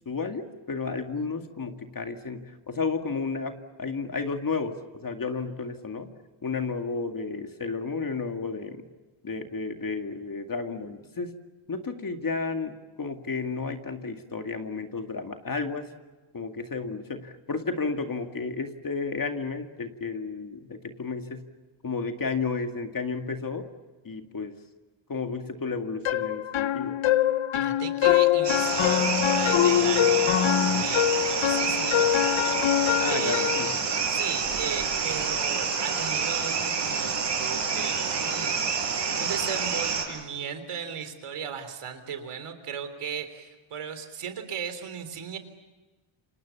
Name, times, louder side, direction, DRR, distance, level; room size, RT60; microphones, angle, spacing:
voice 1, 0.0-6.1 6.4-8.8 9.2-11.3 11.7-15.9 16.3-21.4 21.8-23.7 24.0-24.5 25.1-27.0 33.0-33.8, left 4 dB, 40° left, 5 dB, 2.2 m, -32 dB
sound 1, 26.1-33.7, left 12 dB, 70° left, 0.9 m, -24 dB
voice 2, 27.5-33.5 34.1-38.6 39.2-45.4, right 7 dB, 85° right, 9 dB, 3.7 m, -37 dB
sound 2, 28.4-40.0, right 5 dB, 55° right, 7.5 m, -28 dB
28.5 x 26.5 x 7.1 m, 1.3 s
wide cardioid pair, 115°, 50 cm